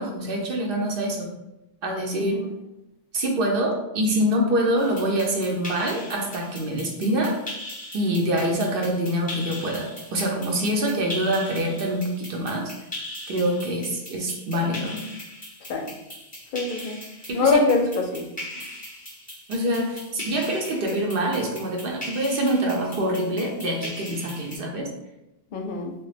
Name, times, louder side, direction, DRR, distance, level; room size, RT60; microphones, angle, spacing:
voice 1, 0.0-1.3 1.8-2.4 3.1-7.3 7.9-12.7 13.3-15.0 17.3-17.6 19.5-24.9, right 1 dB, 65° right, 0 dB, 0.7 m, -25 dB
sound 1, 4.8-24.6, left 1 dB, 10° left, 0.7 m, -40 dB
voice 2, 16.5-17.0 17.3-18.3 25.5-25.9, left 4 dB, 60° left, 3 dB, 0.6 m, -23 dB
3.0 x 2.2 x 3.2 m, 0.94 s
omnidirectional pair, 1.1 m